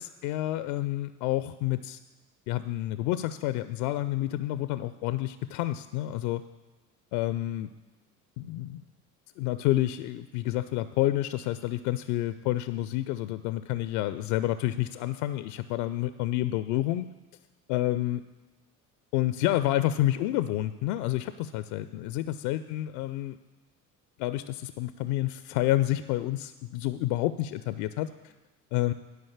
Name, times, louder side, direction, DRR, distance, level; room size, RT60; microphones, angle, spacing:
voice 1, 0.0-2.0 2.5-6.4 7.1-7.7 8.4-8.8 9.4-17.1 17.7-18.2 19.1-23.4 24.2-28.3 28.7-28.9, left 14 dB, 60° left, 13 dB, 0.5 m, -29 dB
11.5 x 5.2 x 7.2 m, 1.2 s
figure-of-eight pair, 60°, 45 cm